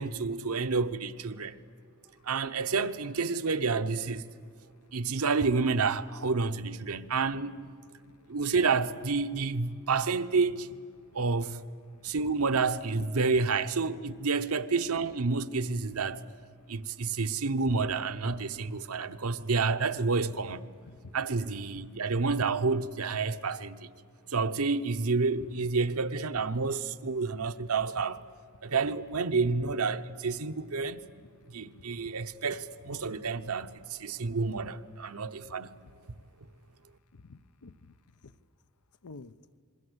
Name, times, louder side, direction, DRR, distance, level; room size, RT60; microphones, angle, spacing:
voice 1, 0.0-1.6 2.2-4.3 4.9-7.5 8.3-10.7 11.1-11.6 12.0-16.2 16.7-20.7 21.1-23.9 24.3-28.2 28.6-31.1 31.5-35.8, right 4 dB, 75° right, 0.9 m, -29 dB
voice 2, 31.6-32.0 32.9-33.2 34.6-34.7 37.1-37.7 38.2-38.3 39.0-39.3, left 3 dB, 90° left, 0.8 m, -49 dB
27.5 x 22.0 x 8.0 m
head